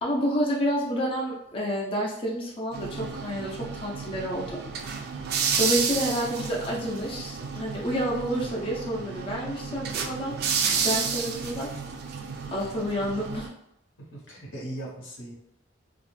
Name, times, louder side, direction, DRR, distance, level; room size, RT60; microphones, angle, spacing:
voice 1, 0.0-4.6 5.6-10.4 10.8-11.7 12.5-13.5, equal, 30° left, -3 dB, 0.4 m, -29 dB
sound 1, 2.7-13.5, right 6 dB, 55° right, 0.3 m, -31 dB
voice 2, 14.1-15.3, right 1 dB, 85° left, -3 dB, 0.9 m, -38 dB
2.4 x 2.0 x 3.0 m, 0.83 s
head